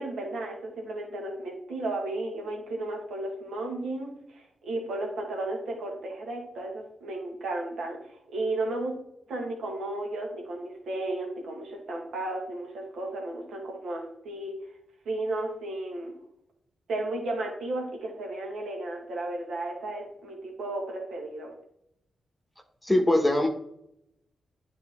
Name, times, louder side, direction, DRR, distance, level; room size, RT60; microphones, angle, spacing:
voice 1, 0.0-9.0 9.3-14.5 15.0-16.1 16.9-21.5, right 2 dB, 80° right, 0 dB, 1.7 m, -34 dB
voice 2, 22.8-23.5, left 1 dB, 10° left, 2 dB, 1.1 m, -21 dB
9.6 x 4.0 x 3.6 m, 0.74 s
cardioid pair, 60°, 0 cm